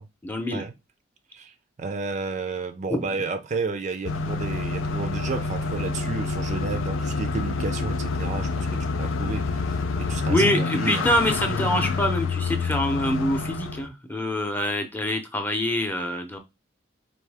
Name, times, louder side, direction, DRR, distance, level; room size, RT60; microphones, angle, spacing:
voice 1, 0.2-0.6 2.9-3.0 10.3-16.4, left 1 dB, 10° left, 0.7 m, -25 dB
voice 2, 1.3-11.1, right 4 dB, 35° right, 0.4 m, -32 dB
sound 1, 4.0-13.9, left 4 dB, 85° left, 0.5 m, -27 dB
4.5 x 2.6 x 3.4 m
head